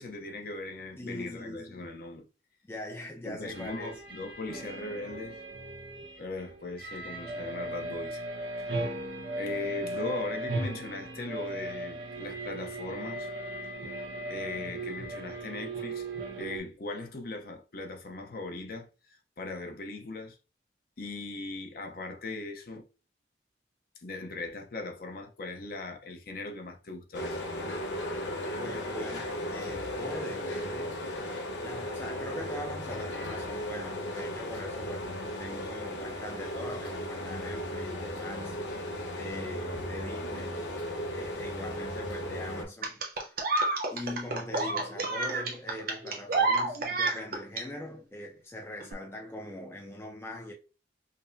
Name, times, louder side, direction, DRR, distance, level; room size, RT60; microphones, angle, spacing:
voice 1, 0.0-2.3 3.2-5.4 6.2-8.2 8.6-8.9 9.4-13.3 14.3-16.1 16.4-20.4 21.0-22.9 24.0-27.4, left 2 dB, 55° left, 0.7 m, -39 dB
voice 2, 1.0-1.8 2.6-3.9 28.6-31.0 31.6-35.1 35.4-38.6 39.2-40.7 41.1-43.4 43.9-50.5, left 1 dB, 15° left, 0.4 m, -41 dB
sound 1, 3.5-16.6, right 1 dB, 70° right, 1.1 m, -37 dB
sound 2, 27.1-42.7, left 1 dB, 85° left, 0.8 m, -36 dB
sound 3, 42.8-47.6 48.8-48.9, right 3 dB, 50° right, 0.8 m, -29 dB
5.2 x 2.0 x 2.6 m
head